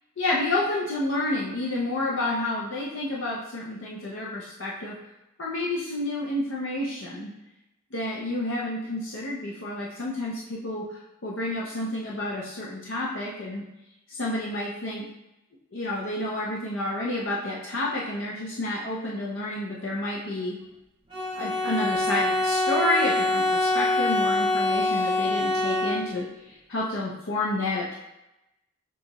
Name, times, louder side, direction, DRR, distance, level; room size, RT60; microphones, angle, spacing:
voice 1, 0.2-5.0 5.4-7.3 7.9-13.6 14.1-15.1 15.7-20.6 21.3-28.0, left 2 dB, 65° left, -4 dB, 0.6 m, -30 dB
Bowed string instrument, 21.1-26.4, left 2 dB, 25° right, 0.8 m, -25 dB
6.7 x 2.4 x 2.9 m, 0.93 s
head